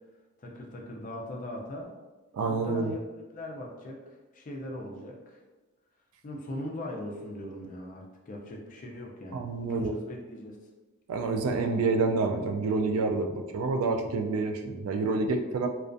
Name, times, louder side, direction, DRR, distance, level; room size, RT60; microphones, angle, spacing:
voice 1, 0.4-1.9 2.5-3.0 3.3-4.0 4.3-5.4 6.2-10.6, left 1 dB, 40° left, 0 dB, 0.4 m, -40 dB
voice 2, 2.3-3.0 9.3-10.0 11.1-15.7, right 3 dB, 85° right, 5 dB, 0.3 m, -28 dB
2.3 x 2.2 x 2.5 m, 1.2 s
head